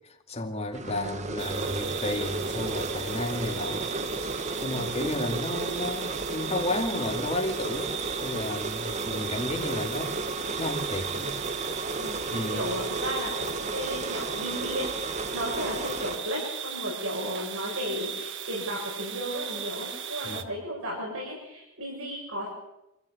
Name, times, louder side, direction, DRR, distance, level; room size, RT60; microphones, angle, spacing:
voice 1, 0.3-3.9 4.6-10.2 10.6-11.3 12.3-12.7 20.2-20.4, left 1 dB, 30° left, 4 dB, 2.4 m, -32 dB
sound 1, 0.7-16.2, right 2 dB, 35° right, 1.3 m, -33 dB
voice 2, 0.8-1.4 4.6-4.9 8.8-9.1 12.0-22.5, equal, 75° right, -3 dB, 7.3 m, -35 dB
sound 2, 1.4-20.4, right 8 dB, 60° right, 1.5 m, -37 dB
26.0 x 14.5 x 8.5 m, 0.91 s
head